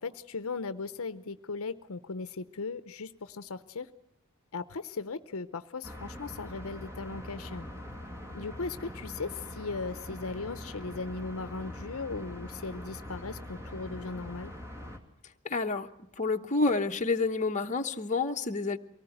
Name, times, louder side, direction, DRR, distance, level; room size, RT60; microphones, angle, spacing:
voice 1, 0.0-3.9 4.5-7.7 8.3-14.5, left 4 dB, 65° left, 13 dB, 0.7 m, -38 dB
sound 1, 5.8-15.0, equal, 15° right, 2.3 m, -43 dB
voice 2, 15.4-15.9 16.2-18.8, left 3 dB, 35° left, 4 dB, 1.0 m, -29 dB
24.0 x 18.0 x 7.9 m, 0.84 s
head